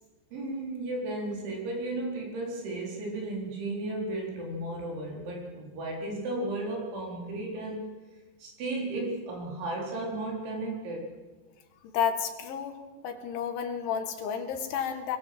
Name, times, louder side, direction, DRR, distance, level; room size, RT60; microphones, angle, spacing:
voice 1, 0.3-7.8 8.4-11.1, right 2 dB, 85° right, -1 dB, 6.8 m, -34 dB
voice 2, 11.9-12.8 13.0-15.2, left 7 dB, 85° left, 6 dB, 4.4 m, -31 dB
22.0 x 20.5 x 7.8 m, 1.3 s
omnidirectional pair, 5.2 m